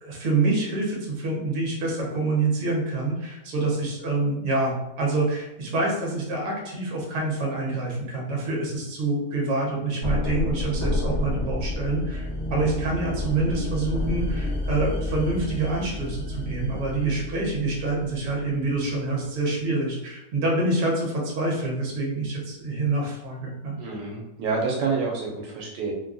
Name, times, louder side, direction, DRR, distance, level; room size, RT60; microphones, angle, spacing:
voice 1, 0.0-23.8, right 2 dB, 60° right, -2 dB, 1.1 m, -26 dB
sound 1, 10.0-18.9, left 1 dB, 35° left, 0.4 m, -30 dB
voice 2, 23.8-25.9, right 4 dB, 80° right, -2 dB, 1.2 m, -28 dB
3.2 x 2.2 x 2.5 m, 0.93 s
omnidirectional pair, 1.8 m